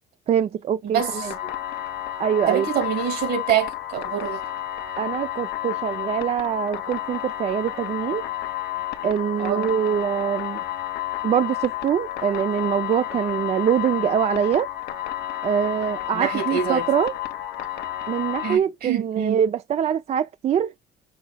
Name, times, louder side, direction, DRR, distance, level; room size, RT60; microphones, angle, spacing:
voice 1, 0.3-1.3 2.2-2.7 5.0-8.3 9.0-10.6 11.2-14.7 15.4-17.1 18.1-20.7, right 9 dB, 40° right, 0.4 m, -24 dB
voice 2, 0.8-1.5 2.5-4.4 9.0-9.7 16.1-16.9 18.4-19.4, right 8 dB, 70° right, 2.6 m, -26 dB
sound 1, 1.0-18.6, left 12 dB, 80° left, 1.0 m, -31 dB
5.7 x 3.9 x 2.2 m
cardioid pair, 110°, 17 cm